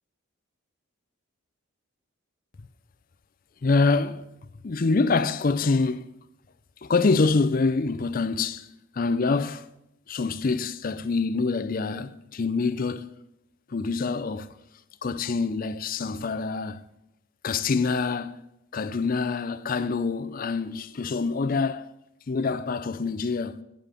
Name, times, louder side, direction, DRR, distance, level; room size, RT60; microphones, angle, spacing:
voice 1, 3.6-4.3 4.6-6.0 6.8-8.7 8.9-9.7 10.1-13.2 13.7-14.6 15.0-16.9 17.4-18.4 18.7-21.9 22.3-23.6, left 4 dB, 45° left, 0.5 m, -25 dB
10.5 x 5.1 x 7.5 m
head